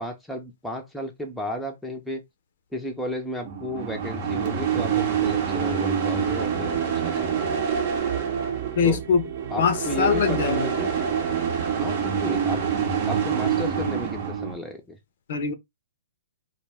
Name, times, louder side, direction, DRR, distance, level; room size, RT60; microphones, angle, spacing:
voice 1, 0.0-2.2 2.7-7.6 8.8-9.0 9.5-10.9 11.8-15.0, left 1 dB, ahead, 0.6 m, -33 dB
sound 1, 3.5-14.5, right 7 dB, 45° right, 0.7 m, -26 dB
voice 2, 8.8-9.2 9.6-10.7 15.3-15.5, left 6 dB, 60° left, 0.6 m, -22 dB
2.2 x 2.2 x 3.3 m
hypercardioid pair, 140°, 0 cm